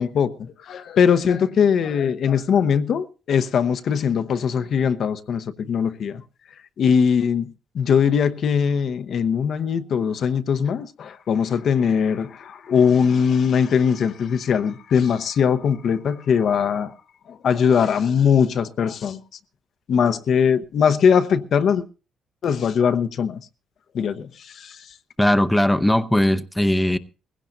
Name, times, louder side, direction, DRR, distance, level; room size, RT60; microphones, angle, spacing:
voice 1, 0.0-6.2 6.8-16.9 17.3-19.2 19.9-21.8 22.4-23.4 23.9-24.9, left 7 dB, 65° left, 0.9 m, -21 dB
voice 2, 25.2-27.0, left 1 dB, 5° left, 0.7 m, -19 dB
20.0 x 16.0 x 2.6 m
cardioid pair, 90°, 0 cm